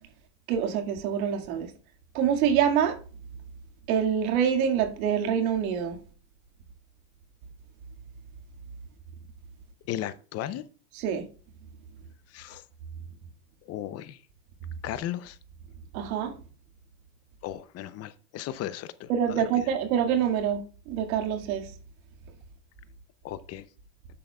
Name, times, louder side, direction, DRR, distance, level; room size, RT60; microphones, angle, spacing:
voice 1, 0.5-1.7 2.1-3.0 3.9-6.0 11.0-11.2 15.9-16.3 19.1-21.7, right 8 dB, 85° right, 2.0 m, -26 dB
voice 2, 9.9-10.7 12.3-12.6 13.6-14.2 14.8-15.4 17.4-19.7 23.2-23.7, left 12 dB, 40° left, 0.6 m, -36 dB
10.0 x 7.8 x 2.3 m
supercardioid pair, 145°, 41 cm